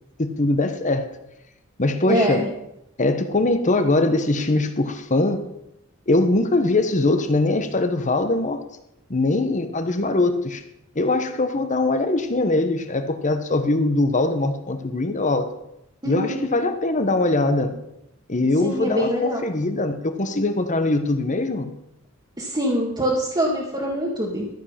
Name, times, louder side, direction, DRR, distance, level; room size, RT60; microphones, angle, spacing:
voice 1, 0.2-1.0 1.8-2.4 3.0-5.5 6.1-8.6 9.1-10.6 10.9-15.5 16.0-17.8 18.3-21.7, left 2 dB, 35° left, 8 dB, 1.1 m, -22 dB
voice 2, 2.1-2.5 16.0-16.4 18.6-19.4 22.4-24.5, equal, 20° right, -4 dB, 1.7 m, -24 dB
13.5 x 7.6 x 5.8 m, 0.84 s
head